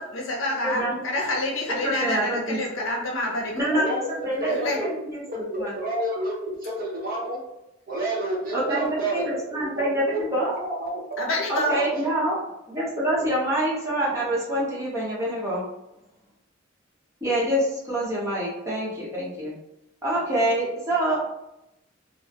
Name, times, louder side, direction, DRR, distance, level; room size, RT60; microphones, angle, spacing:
voice 1, 0.1-3.7 4.5-4.8 11.2-11.8, left 1 dB, 85° left, -1 dB, 0.6 m, -27 dB
voice 2, 0.6-0.9 1.7-2.6 3.5-5.7 8.5-10.5 11.5-12.4 12.7-15.6 17.2-19.5 20.0-21.3, right 1 dB, 15° right, -7 dB, 0.8 m, -26 dB
voice 3, 3.7-4.1 4.4-4.9 5.3-7.4 7.9-10.3 10.6-11.2 11.7-12.1 12.9-13.3, right 1 dB, 50° right, -4 dB, 0.8 m, -30 dB
2.2 x 2.0 x 2.7 m, 0.88 s
head